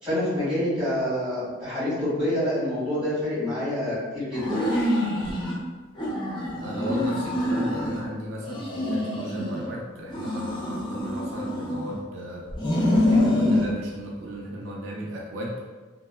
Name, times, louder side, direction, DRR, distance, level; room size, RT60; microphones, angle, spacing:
voice 1, 0.0-4.6, left 1 dB, 5° right, -12 dB, 1.5 m, -27 dB
sound 1, 4.3-5.6 6.0-8.0 8.4-9.7 10.1-12.0 12.5-13.7, left 1 dB, 25° left, 0.4 m, -26 dB
voice 2, 6.6-12.5 13.1-15.6, equal, 75° right, -2 dB, 0.4 m, -35 dB
2.8 x 2.2 x 2.2 m, 1.3 s
head